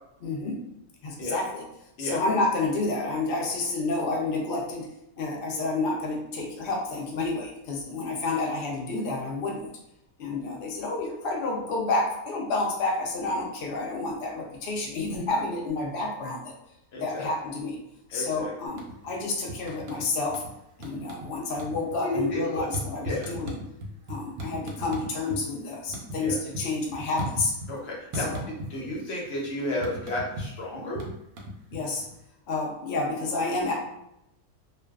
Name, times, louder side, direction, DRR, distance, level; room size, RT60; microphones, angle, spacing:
voice 1, 0.2-0.6 1.0-1.6 2.0-4.9 5.2-9.7 10.2-16.5 17.0-17.8 18.1-20.4 20.8-23.6 24.1-27.5 28.1-28.4 31.7-32.0 32.5-33.7, left 3 dB, 90° left, -1 dB, 0.5 m, -29 dB
voice 2, 16.9-17.3 18.1-18.5 22.0-22.7 23.0-23.3 26.2-26.4 27.7-28.3 28.7-31.0, left 1 dB, 60° left, -3 dB, 0.8 m, -32 dB
sound 1, 18.7-19.2 19.5-20.5 20.8-21.3 21.5-25.4 25.7-27.8 28.1-29.0 29.2-32.1, equal, 80° right, 1.0 m, -36 dB
2.5 x 2.2 x 2.2 m, 0.83 s
omnidirectional pair, 1.5 m